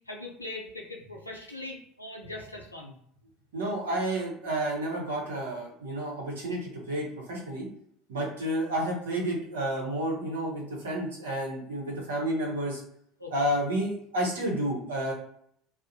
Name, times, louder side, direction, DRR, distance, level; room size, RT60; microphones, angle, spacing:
voice 1, 0.1-3.0 13.2-13.3, left 2 dB, 85° left, -1 dB, 0.5 m, -41 dB
voice 2, 3.5-7.7 8.1-12.8 13.3-15.1, right 1 dB, 70° right, -2 dB, 0.8 m, -30 dB
2.4 x 2.1 x 2.7 m, 0.67 s
figure-of-eight pair, 65°, 0 cm